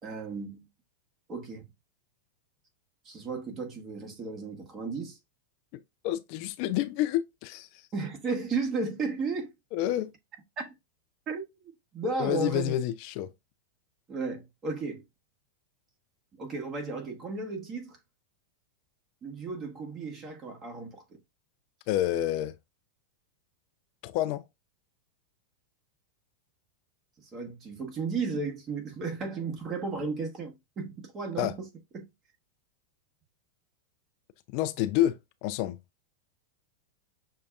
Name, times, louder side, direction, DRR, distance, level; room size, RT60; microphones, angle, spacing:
voice 1, 0.0-0.6 1.3-1.6 3.0-5.2 7.9-9.5 10.6-10.7 11.3-12.7 14.1-15.0 16.4-18.0 19.2-21.0 27.2-31.7 31.9-32.1, right 4 dB, 30° right, 1.3 m, -34 dB
voice 2, 6.0-7.7 9.7-10.1 12.2-13.3 21.9-22.5 24.0-24.4 31.4-31.5 34.5-35.8, left 13 dB, 55° left, 0.4 m, -28 dB
6.4 x 2.2 x 2.4 m
hypercardioid pair, 105°, 0 cm